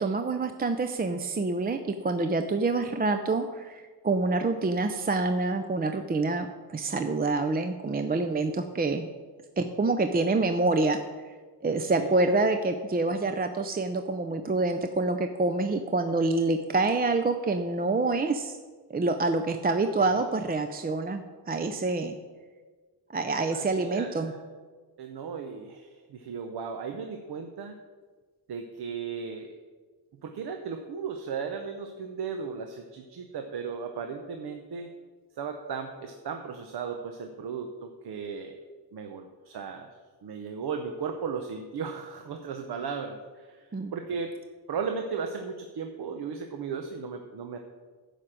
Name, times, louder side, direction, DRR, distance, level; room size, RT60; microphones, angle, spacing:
voice 1, 0.0-9.1 9.6-11.0 11.6-18.6 18.9-22.2 23.1-24.3 43.7-43.9, right 3 dB, 25° right, 7 dB, 0.5 m, -27 dB
voice 2, 12.0-12.3 20.0-20.2 23.5-24.4 25.0-27.8 28.5-29.5 30.2-34.9 35.4-38.6 38.9-39.9 40.2-44.4 44.7-47.6, right 6 dB, 70° right, 5 dB, 0.9 m, -36 dB
10.5 x 5.1 x 7.5 m, 1.4 s
cardioid pair, 100°, 41 cm